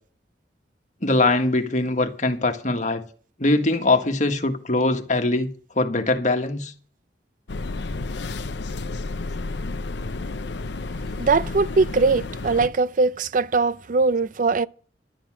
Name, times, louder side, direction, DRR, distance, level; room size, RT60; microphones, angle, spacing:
voice 1, 1.0-3.1 3.4-5.5 5.7-6.7, left 2 dB, 45° left, 1.6 m, -22 dB
sound 1, 7.5-12.7, left 3 dB, 75° left, 0.7 m, -31 dB
voice 2, 11.2-14.7, right 4 dB, 45° right, 0.5 m, -21 dB
11.5 x 10.5 x 6.2 m
head